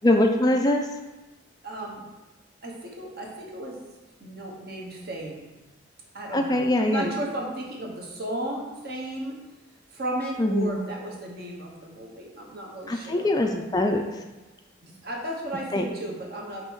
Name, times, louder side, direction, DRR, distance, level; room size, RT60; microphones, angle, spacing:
voice 1, 0.0-0.9 6.3-7.1 10.4-10.8 12.9-14.0 15.7-15.8, left 1 dB, 20° left, 4 dB, 0.3 m, -22 dB
voice 2, 1.6-2.0 2.6-3.8 4.2-5.5 6.1-9.4 9.9-13.5 14.8-16.6, right 1 dB, 50° right, -1 dB, 1.1 m, -34 dB
5.4 x 4.1 x 4.7 m, 1.1 s
head